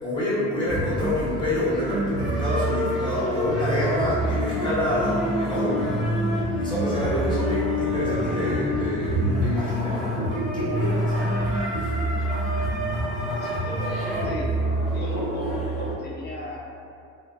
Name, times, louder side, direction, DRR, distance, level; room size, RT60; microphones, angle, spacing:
voice 1, 0.0-6.1 6.6-11.4 11.8-11.9, equal, 15° left, -12 dB, 1.4 m, -27 dB
sound 1, 0.7-15.9, equal, ahead, 0.9 m, -26 dB
voice 2, 13.4-14.5 14.9-16.6, left 1 dB, 30° left, -5 dB, 0.7 m, -35 dB
3.2 x 2.1 x 2.4 m, 2.4 s
cardioid pair, 100°, 31 cm